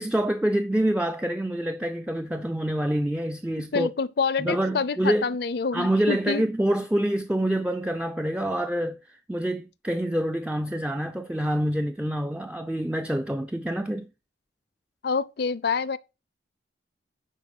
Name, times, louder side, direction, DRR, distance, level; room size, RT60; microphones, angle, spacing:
voice 1, 0.0-3.9 4.4-5.2 5.7-14.1, right 1 dB, 5° right, 0.3 m, -26 dB
voice 2, 3.5-6.4 15.0-16.0, left 5 dB, 55° left, 0.5 m, -27 dB
11.0 x 4.2 x 4.8 m
head